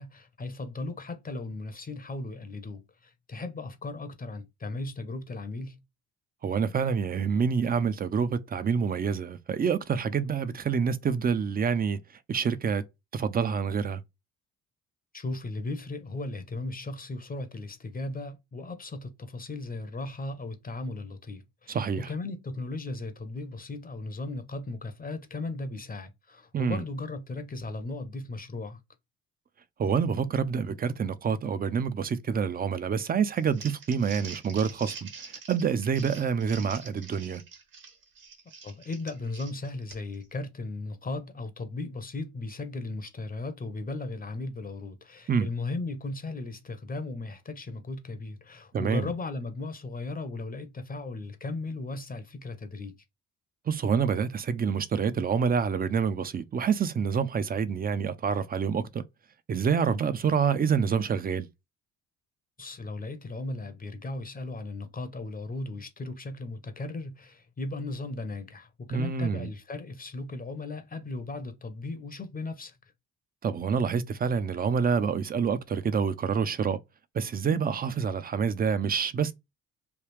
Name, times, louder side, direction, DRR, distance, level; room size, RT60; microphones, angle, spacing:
voice 1, 0.0-5.8 15.1-28.8 38.6-53.0 62.6-72.8, left 2 dB, 25° left, 0.6 m, -36 dB
voice 2, 6.4-12.0 12.3-12.8 13.1-14.0 21.7-22.1 26.5-26.8 29.8-37.4 45.3-45.5 48.7-49.1 53.7-59.0 59.5-61.5 68.9-69.5 73.4-76.8 77.1-79.3, right 6 dB, 25° right, 0.4 m, -27 dB
Crumpling crinkling, 33.3-40.2, right 5 dB, 65° right, 1.5 m, -45 dB
3.3 x 2.3 x 3.2 m
supercardioid pair, 70°, 35 cm